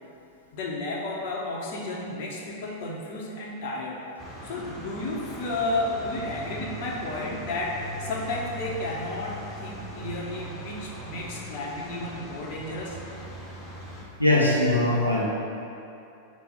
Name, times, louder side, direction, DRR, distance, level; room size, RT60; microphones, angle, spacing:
voice 1, 0.5-4.0 4.4-13.0, left 2 dB, 45° left, -4 dB, 1.0 m, -32 dB
sound 1, 4.2-14.0, equal, 15° left, 1.3 m, -40 dB
voice 2, 14.2-15.2, left 1 dB, 90° left, -6 dB, 0.9 m, -21 dB
4.6 x 4.2 x 5.4 m, 2.7 s
figure-of-eight pair, 90°, 0 cm